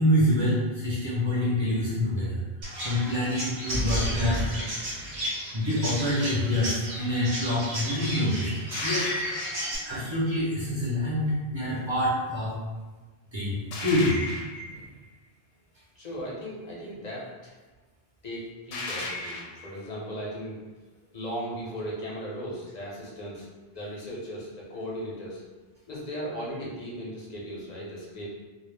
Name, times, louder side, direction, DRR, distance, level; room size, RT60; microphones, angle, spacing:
voice 1, 0.0-2.4 2.8-4.4 5.5-8.5 8.8-9.1 9.8-12.5 13.3-14.2 14.7-14.8, left 1 dB, 35° right, -7 dB, 0.6 m, -26 dB
Chirp tweet, 2.6-9.8, equal, 70° right, 1.1 m, -34 dB
sound 1, 3.7-5.3 8.7-9.9 13.7-14.9 18.7-19.7, left 1 dB, 75° left, 0.8 m, -33 dB
voice 2, 16.0-17.5 18.2-20.6 21.1-23.5 23.7-25.4 25.9-28.3, equal, 45° left, -5 dB, 0.8 m, -37 dB
2.3 x 2.1 x 3.2 m, 1.2 s
omnidirectional pair, 1.0 m